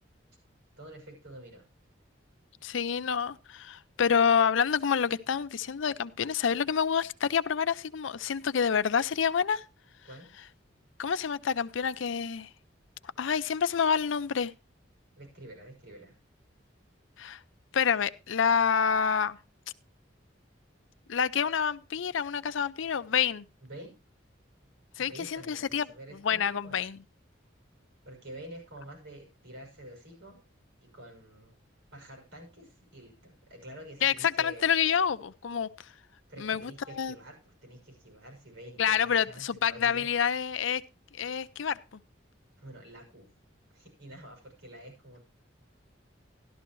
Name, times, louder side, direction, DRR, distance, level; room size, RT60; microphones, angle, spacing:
voice 1, 0.8-1.6 10.0-10.3 15.2-16.1 23.6-24.0 25.0-26.8 28.0-30.4 30.8-31.6 31.9-34.7 36.3-40.1 42.6-43.3 43.7-45.2, right 1 dB, 85° right, 1 dB, 6.1 m, -48 dB
voice 2, 2.6-9.6 11.0-12.5 13.2-14.5 17.2-17.4 17.7-19.4 21.1-23.5 25.0-25.9 26.2-27.0 34.0-35.7 36.4-37.1 38.8-40.8 41.2-41.8, left 7 dB, 80° left, 14 dB, 0.5 m, -27 dB
12.5 x 12.5 x 3.1 m, 0.30 s
head